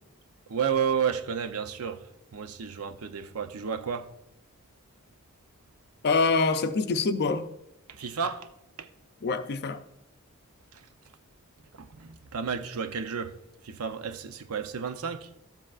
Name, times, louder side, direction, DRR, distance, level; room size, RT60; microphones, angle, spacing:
voice 1, 0.5-4.1 7.9-8.5 8.8-8.9 10.7-10.9 11.8-13.4 13.6-15.3, right 7 dB, 85° right, 0.6 m, -32 dB
voice 2, 6.0-7.5 9.2-9.9, left 4 dB, 50° left, 0.5 m, -25 dB
13.0 x 7.6 x 2.4 m
head